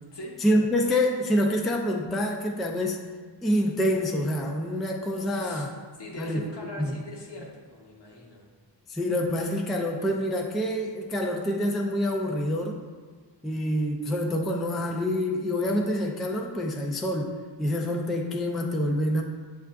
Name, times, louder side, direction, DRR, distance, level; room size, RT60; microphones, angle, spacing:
voice 1, 0.4-3.0 3.4-5.7 6.2-6.4 6.8-7.0 8.9-12.8 13.4-19.2, left 1 dB, ahead, 0 dB, 0.3 m, -26 dB
voice 2, 5.3-5.7 6.0-8.5, left 1 dB, 65° left, -2 dB, 0.9 m, -41 dB
7.2 x 2.4 x 2.2 m, 1.4 s
wide cardioid pair, 55°, 45 cm